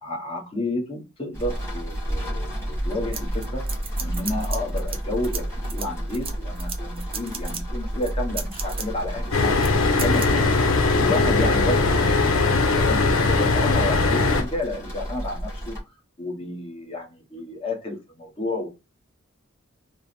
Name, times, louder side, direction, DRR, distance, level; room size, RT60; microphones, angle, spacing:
voice 1, 0.0-3.7 4.0-9.6 10.0-10.5 10.9-15.8 16.2-18.7, left 1 dB, 30° left, 1.1 m, -31 dB
sound 1, 1.3-15.8, equal, 15° left, 1.7 m, -31 dB
sound 2, 3.1-5.0 5.2-7.6 8.0-8.9 9.6-9.7 10.0-10.3, right 6 dB, 25° right, 0.6 m, -34 dB
sound 3, 9.3-14.4, left 3 dB, 80° left, 0.7 m, -20 dB
3.4 x 2.1 x 4.3 m
head